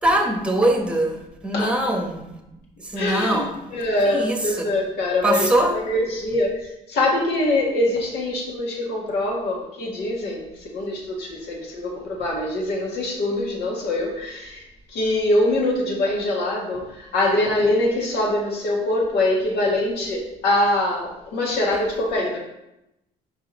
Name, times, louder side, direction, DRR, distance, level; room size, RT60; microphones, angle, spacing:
voice 1, 0.0-2.4 2.8-3.7 4.0-4.7 5.2-5.8, right 1 dB, 5° right, 3 dB, 1.0 m, -22 dB
voice 2, 3.0-14.6 14.9-22.4, left 1 dB, 75° left, -2 dB, 1.7 m, -23 dB
5.1 x 4.8 x 4.0 m, 0.89 s
cardioid pair, 110°, 17 cm